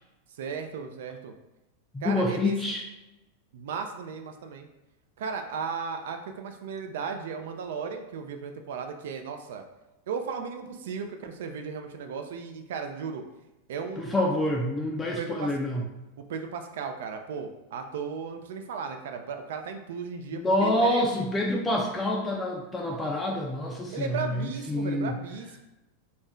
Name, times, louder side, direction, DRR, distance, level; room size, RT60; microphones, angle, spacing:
voice 1, 0.3-1.3 2.0-2.6 3.5-4.7 5.2-9.6 10.1-13.2 13.7-14.2 15.2-15.5 16.2-21.0 23.9-25.6, right 6 dB, 75° right, 6 dB, 0.4 m, -35 dB
voice 2, 1.9-2.8 14.0-15.8 20.3-25.2, left 1 dB, 15° left, -1 dB, 0.4 m, -27 dB
2.5 x 2.1 x 3.6 m, 1.0 s
supercardioid pair, 130°, 0 cm